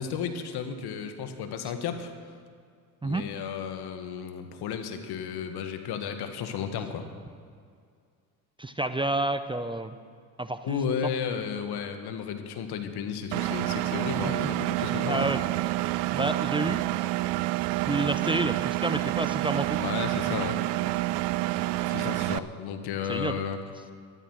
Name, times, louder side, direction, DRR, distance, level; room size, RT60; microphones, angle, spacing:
voice 1, 0.0-2.1 3.0-7.1 10.6-15.3 19.8-20.6 21.8-23.6, left 7 dB, 65° left, 7 dB, 1.7 m, -33 dB
voice 2, 8.6-10.0 10.4-10.8 14.3-14.4 15.0-15.4 16.1-16.8 17.9-19.8 23.1-23.4, right 2 dB, 10° right, 10 dB, 0.7 m, -29 dB
Engine, 13.3-22.4, right 17 dB, 70° right, 0.6 m, -28 dB
13.5 x 12.5 x 6.3 m, 2.2 s
hypercardioid pair, 65°, 42 cm